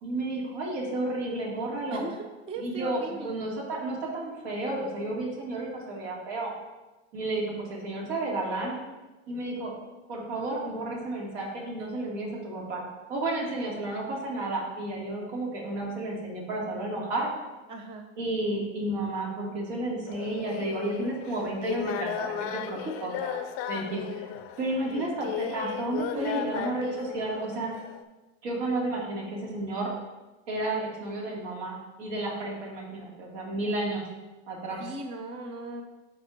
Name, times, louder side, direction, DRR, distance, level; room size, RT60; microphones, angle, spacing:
voice 1, 0.0-2.0 2.6-6.5 7.1-8.8 9.3-9.7 10.1-12.8 13.1-17.3 18.2-23.4 23.7-24.3 24.6-27.7 28.4-29.9 30.5-34.0 34.5-34.9, right 2 dB, 75° right, -3 dB, 2.4 m, -32 dB
voice 2, 1.9-3.4 17.7-18.1 26.1-26.6 34.8-35.8, right 2 dB, 15° right, 4 dB, 0.3 m, -38 dB
sound 1, 20.1-28.0, left 10 dB, 45° left, 0.5 m, -36 dB
11.0 x 4.3 x 2.6 m, 1.1 s
supercardioid pair, 130°, 34 cm